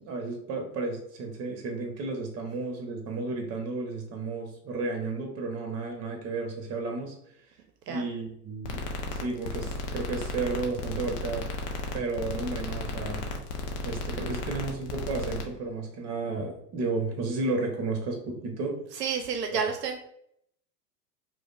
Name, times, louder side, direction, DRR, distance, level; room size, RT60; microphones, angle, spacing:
voice 1, 0.0-7.1 7.9-11.5 11.9-13.3 13.8-18.8 19.5-19.6, right 3 dB, 30° right, 3 dB, 0.9 m, -33 dB
sound 1, 8.6-15.4, left 2 dB, 25° left, 0.3 m, -34 dB
voice 2, 19.0-20.0, right 6 dB, 75° right, 5 dB, 0.5 m, -30 dB
4.7 x 2.0 x 2.4 m, 0.73 s
figure-of-eight pair, 90°, 49 cm